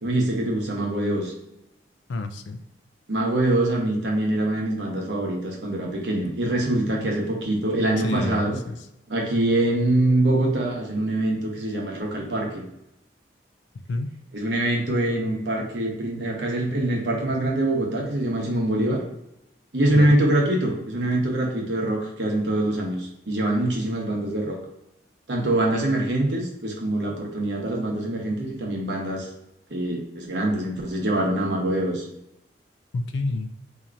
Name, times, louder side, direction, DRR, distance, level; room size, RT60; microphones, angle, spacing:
voice 1, 0.0-1.3 3.1-8.6 9.1-12.6 14.3-19.0 19.7-24.6 25.3-29.3 29.7-32.0, right 1 dB, 75° right, 0 dB, 0.9 m, -24 dB
voice 2, 2.1-2.6 8.0-8.8 13.9-14.1 19.9-20.2 32.9-33.5, left 2 dB, 80° left, 8 dB, 0.4 m, -29 dB
4.4 x 2.8 x 2.5 m, 0.82 s
head